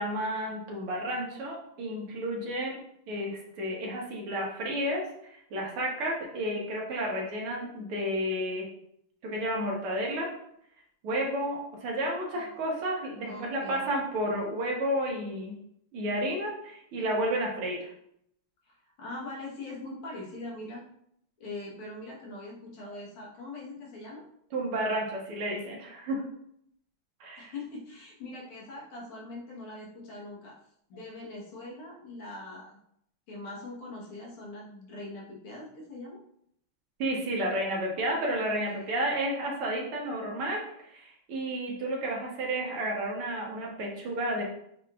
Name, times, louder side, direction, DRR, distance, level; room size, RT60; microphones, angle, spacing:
voice 1, 0.0-2.8 3.1-5.0 5.3-8.6 9.2-10.3 11.0-15.6 15.9-17.9 24.5-26.2 27.2-27.5 37.0-40.6 40.9-44.4, right 1 dB, 85° right, -2 dB, 2.0 m, -31 dB
voice 2, 13.2-13.9 18.6-20.8 21.4-24.3 27.4-30.6 30.9-32.8 33.3-36.2 38.7-38.9, left 2 dB, 80° left, -4 dB, 2.1 m, -42 dB
7.4 x 3.0 x 2.4 m, 0.72 s
omnidirectional pair, 2.3 m